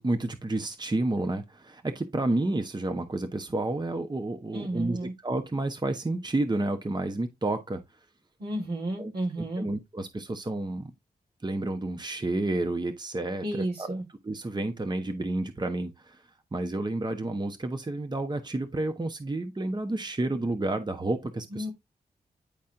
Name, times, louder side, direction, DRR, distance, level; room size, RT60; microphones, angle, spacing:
voice 1, 0.0-7.8 9.0-9.1 9.4-10.9 11.4-13.9 14.2-16.2 16.5-21.7, right 2 dB, 25° right, 1.2 m, -30 dB
voice 2, 4.5-5.1 8.4-9.7 13.4-14.0 21.5-21.7, right 1 dB, 80° right, 4.8 m, -32 dB
10.5 x 4.3 x 3.8 m
cardioid pair, 60°, 16 cm